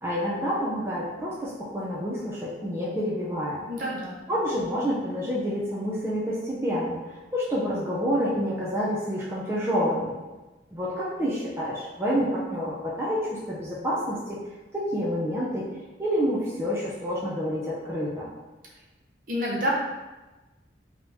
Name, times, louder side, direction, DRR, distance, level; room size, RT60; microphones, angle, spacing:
voice 1, 0.0-3.6 4.3-7.0 7.3-10.1 10.7-14.4 14.7-15.6 16.0-18.3, equal, 15° right, -7 dB, 0.5 m, -28 dB
voice 2, 3.7-4.2 19.3-19.7, equal, 45° right, -4 dB, 0.7 m, -28 dB
3.8 x 2.9 x 2.7 m, 1.1 s
head